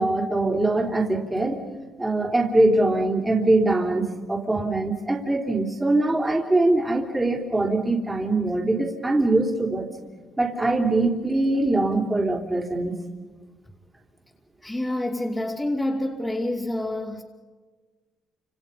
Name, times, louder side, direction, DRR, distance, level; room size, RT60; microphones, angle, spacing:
voice 1, 0.0-1.6 2.0-9.9 10.4-12.9, right 2 dB, 15° right, 1 dB, 3.4 m, -22 dB
voice 2, 14.6-17.2, left 1 dB, 15° left, -3 dB, 2.9 m, -27 dB
30.0 x 27.5 x 5.5 m, 1.4 s
cardioid pair, 90°, 0 cm